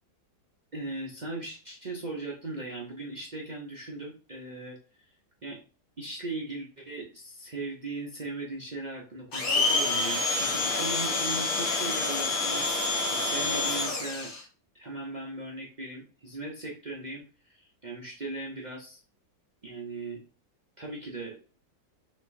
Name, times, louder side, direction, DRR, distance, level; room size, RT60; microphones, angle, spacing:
voice 1, 0.7-5.0 5.4-5.6 6.0-14.3 14.7-19.0 19.6-20.2 20.8-21.4, right 2 dB, 40° right, -3 dB, 0.6 m, -38 dB
Domestic sounds home sounds, 9.3-14.4, left 3 dB, 60° left, 1.7 m, -28 dB
5.2 x 3.2 x 2.6 m, 0.36 s
omnidirectional pair, 1.8 m